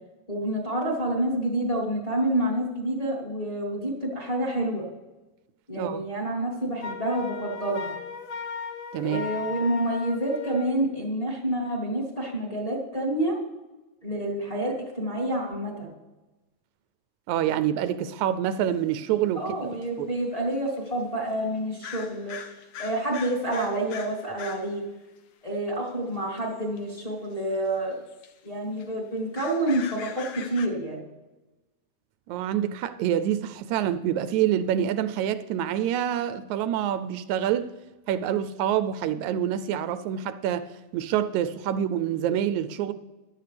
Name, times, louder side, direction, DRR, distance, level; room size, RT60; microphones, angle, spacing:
voice 1, 0.3-4.8 5.7-7.9 9.0-13.4 14.0-15.9 19.3-22.4 22.8-24.8 25.4-28.0 28.4-31.0, right 1 dB, 15° left, -2 dB, 2.2 m, -28 dB
Wind instrument woodwind instrument, 6.8-10.8, left 5 dB, 90° left, 1.1 m, -36 dB
voice 2, 17.3-19.4 20.0-20.1 32.3-37.7 38.1-40.7 40.9-42.9, right 10 dB, 85° right, 12 dB, 1.9 m, -26 dB
sound 1, 18.9-19.0 19.8-19.9 20.8-20.9 21.8-24.7 26.4-26.8 27.4-27.6 27.9-28.3 28.8-28.9 29.2-30.7, left 8 dB, 70° left, 1.3 m, -41 dB
15.0 x 11.0 x 3.4 m, 1.1 s
omnidirectional pair, 3.4 m